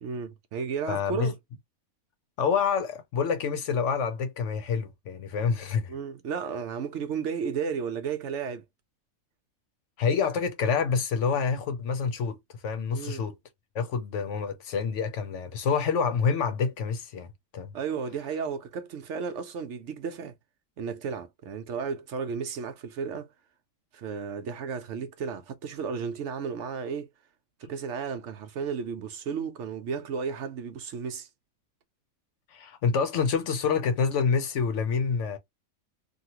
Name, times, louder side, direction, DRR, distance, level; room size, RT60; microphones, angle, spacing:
voice 1, 0.0-1.3 5.9-8.6 12.9-13.2 17.7-20.3 20.8-23.3 23.9-27.1 27.6-31.3, right 6 dB, 65° right, 0.9 m, -33 dB
voice 2, 0.9-1.3 2.4-5.9 10.0-13.4 13.7-17.7 32.5-35.4, left 6 dB, 65° left, 0.9 m, -27 dB
2.9 x 2.4 x 2.8 m
omnidirectional pair, 1.5 m